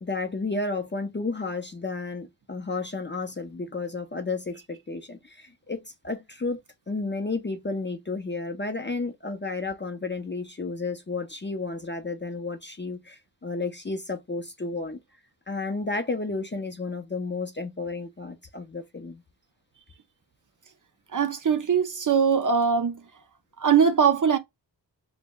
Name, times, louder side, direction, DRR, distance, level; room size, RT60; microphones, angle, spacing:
voice 1, 0.0-6.6 6.9-15.0 15.5-19.2, left 3 dB, 25° left, 0.4 m, -32 dB
voice 2, 21.1-23.0 23.6-24.4, right 6 dB, 45° right, 0.4 m, -21 dB
2.1 x 2.0 x 3.6 m
wide cardioid pair, 70°, 45 cm